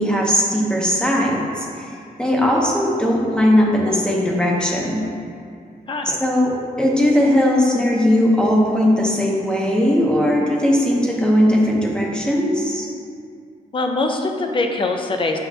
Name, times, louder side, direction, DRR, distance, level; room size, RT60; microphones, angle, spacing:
voice 1, 0.0-5.0 6.2-12.9, left 1 dB, 5° left, -3 dB, 0.9 m, -18 dB
voice 2, 5.9-6.2 13.7-15.4, left 3 dB, 35° left, 3 dB, 0.6 m, -23 dB
8.1 x 5.5 x 2.8 m, 2.3 s
wide cardioid pair, 145°, 15 cm